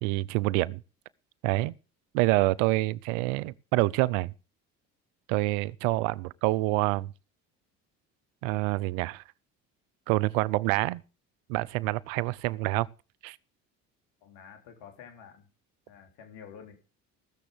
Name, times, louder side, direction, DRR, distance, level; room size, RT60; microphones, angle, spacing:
voice 1, 0.0-0.8 1.4-1.7 2.1-4.3 5.3-7.1 8.4-9.2 10.1-11.0 11.5-12.9 13.2-13.4, right 20 dB, 90° right, 0.7 m, -27 dB
voice 2, 14.2-15.5 15.9-16.8, left 7 dB, 85° left, 3.8 m, -49 dB
16.0 x 7.2 x 6.7 m
supercardioid pair, 70°, 37 cm